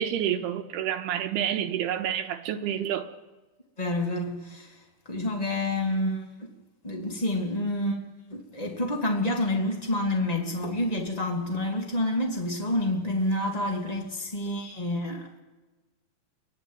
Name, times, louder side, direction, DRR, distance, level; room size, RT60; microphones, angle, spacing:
voice 1, 0.0-3.1, right 10 dB, 80° right, 2.8 m, -29 dB
voice 2, 3.8-6.5 6.8-8.0 8.3-15.4, left 1 dB, 40° left, 0.5 m, -28 dB
24.0 x 17.0 x 9.3 m
omnidirectional pair, 5.0 m